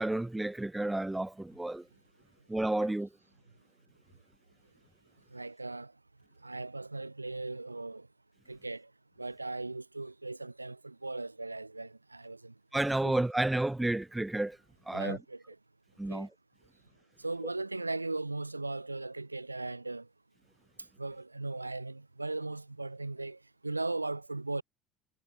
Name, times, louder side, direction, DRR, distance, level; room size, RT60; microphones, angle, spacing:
voice 1, 0.0-1.9 2.5-3.1 12.7-14.6 14.9-15.2 16.0-16.3, right 1 dB, 10° right, 5.0 m, -31 dB
voice 2, 5.3-5.9 6.4-8.1 8.5-8.9 9.2-12.5 13.0-13.1 14.9-15.6 16.1-16.3 17.2-20.1 21.0-24.6, right 2 dB, 85° right, 6.0 m, -38 dB
figure-of-eight pair, 60°, 0 cm